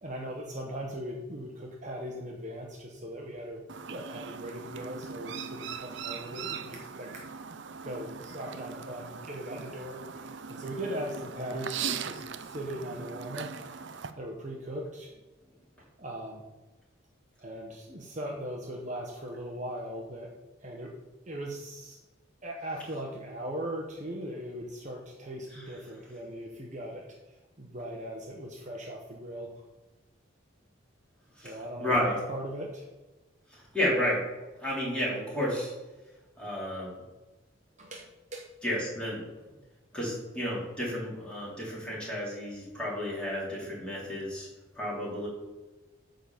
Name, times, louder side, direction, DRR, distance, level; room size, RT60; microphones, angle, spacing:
voice 1, 0.0-3.6 3.9-7.3 7.8-13.5 14.2-15.1 16.0-16.5 17.4-20.3 20.6-20.9 21.2-22.0 22.4-29.5 31.4-32.9 37.8-38.5, right 1 dB, 35° right, 0 dB, 1.0 m, -39 dB
Chirp tweet, 3.7-14.1, right 6 dB, 60° right, 0.5 m, -40 dB
voice 2, 31.8-32.1 33.7-34.2 34.6-35.7 36.4-36.9 38.6-39.2 39.9-44.5 44.8-45.3, left 1 dB, 5° left, -6 dB, 3.2 m, -31 dB
9.2 x 3.9 x 7.0 m, 1.1 s
head